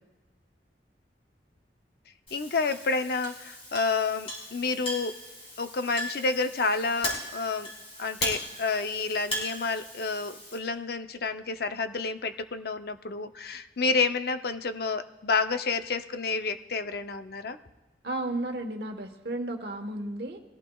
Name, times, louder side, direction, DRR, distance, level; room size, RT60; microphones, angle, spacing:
voice 1, 2.3-5.2 5.6-7.7 8.0-17.6, left 4 dB, 60° left, 9 dB, 0.6 m, -29 dB
Chink clink, 2.3-10.6, left 1 dB, 35° left, 3.9 m, -38 dB
voice 2, 18.0-20.4, right 1 dB, 65° right, 5 dB, 1.2 m, -33 dB
21.0 x 14.5 x 2.3 m, 1.2 s
head